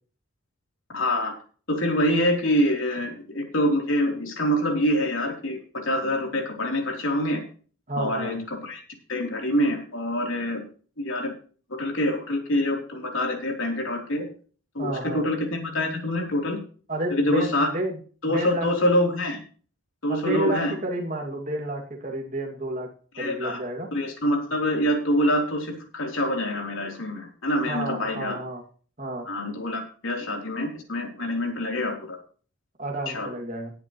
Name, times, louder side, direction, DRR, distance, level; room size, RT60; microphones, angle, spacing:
voice 1, 0.9-1.3 1.7-7.4 8.0-8.8 9.1-10.7 11.0-11.3 11.7-14.3 14.7-16.6 17.1-17.7 18.2-19.4 20.0-20.7 23.2-23.6 23.9-28.4 29.3-32.2 33.1-33.3, left 1 dB, 80° left, 1 dB, 3.6 m, -25 dB
voice 2, 7.9-8.4 14.8-15.3 16.9-18.0 18.2-18.7 20.1-22.9 23.2-23.9 27.7-28.6 29.0-29.3 32.8-33.7, right 1 dB, 40° right, 0 dB, 2.4 m, -30 dB
19.0 x 8.1 x 3.1 m, 0.40 s
head